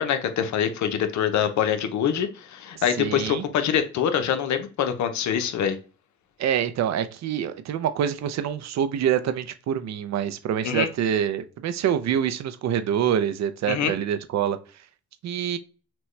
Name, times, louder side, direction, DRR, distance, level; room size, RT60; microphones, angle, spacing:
voice 1, 0.0-5.8 10.6-10.9 13.7-13.9, left 8 dB, 70° left, 0.8 m, -24 dB
voice 2, 3.0-3.5 6.4-14.6 15.2-15.6, right 9 dB, 60° right, 0.6 m, -26 dB
6.0 x 2.3 x 3.2 m
cardioid pair, 90°, 30 cm